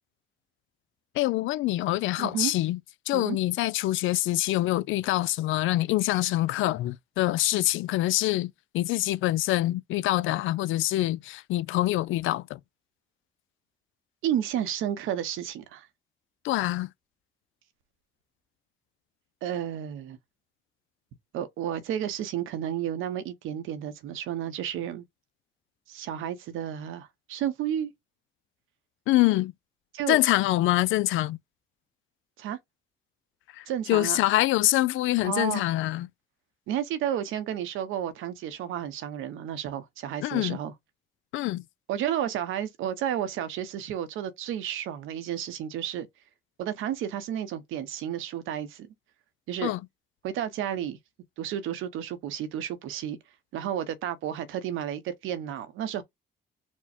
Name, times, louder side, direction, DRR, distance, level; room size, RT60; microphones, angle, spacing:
voice 1, 1.2-2.8 3.1-12.6 16.4-16.9 29.1-29.5 30.1-31.4 33.5-36.1 40.2-40.6 41.3-41.6 49.6-49.8, left 16 dB, 85° left, 0.4 m, -25 dB
voice 2, 2.2-2.5 3.1-3.4 14.2-15.9 19.4-20.2 21.3-25.0 25.9-27.9 29.9-30.2 32.4-32.6 33.7-34.2 35.2-35.6 36.7-40.7 41.9-46.1 46.6-48.9 49.5-49.7 50.2-51.0 51.4-53.2 53.5-56.0, right 10 dB, 90° right, 0.9 m, -32 dB
4.5 x 2.2 x 4.2 m
cardioid pair, 90°, 20 cm